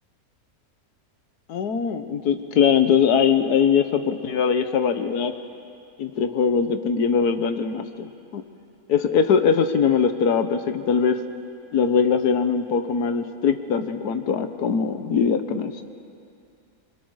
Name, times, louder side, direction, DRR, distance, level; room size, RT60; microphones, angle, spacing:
voice 1, 1.5-5.3 6.0-8.4 8.9-11.2 11.7-15.7, left 6 dB, 80° left, 9 dB, 1.5 m, -21 dB
26.5 x 22.0 x 4.7 m, 2.5 s
omnidirectional pair, 1.7 m